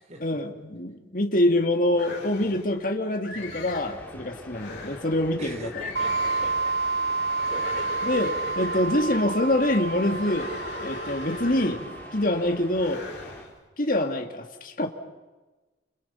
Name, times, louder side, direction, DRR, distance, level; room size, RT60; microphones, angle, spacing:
voice 1, 0.2-5.7 8.0-10.5 10.8-13.0 13.8-14.9, left 1 dB, 50° left, 4 dB, 2.4 m, -25 dB
sound 1, 1.9-2.7 3.2-4.0 4.5-5.1 5.7-6.7 7.2-9.1 9.9-12.1 12.7-13.5, left 3 dB, 85° left, 6.7 m, -39 dB
sound 2, 3.8-13.5, left 1 dB, 10° left, 4.5 m, -45 dB
voice 2, 5.4-6.7 7.5-8.1, right 1 dB, 40° right, 4 dB, 4.0 m, -41 dB
sound 3, 6.0-12.5, right 4 dB, 70° right, 1.2 m, -30 dB
29.5 x 29.0 x 5.8 m, 1.2 s
head